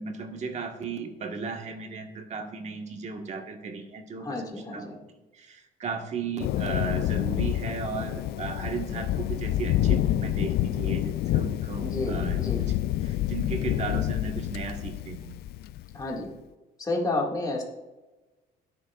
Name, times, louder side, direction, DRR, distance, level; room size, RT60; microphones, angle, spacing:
voice 1, 0.0-4.4 4.7-5.0 5.3-12.4 13.0-15.4, right 5 dB, 45° right, 3 dB, 1.6 m, -35 dB
voice 2, 4.2-5.0 11.8-12.6 15.9-16.3 16.8-17.6, left 2 dB, 20° left, -2 dB, 2.1 m, -30 dB
Thunder, 6.4-16.0, left 13 dB, 70° left, 0.4 m, -28 dB
21.5 x 7.4 x 2.5 m, 1.1 s
cardioid pair, 110°, 17 cm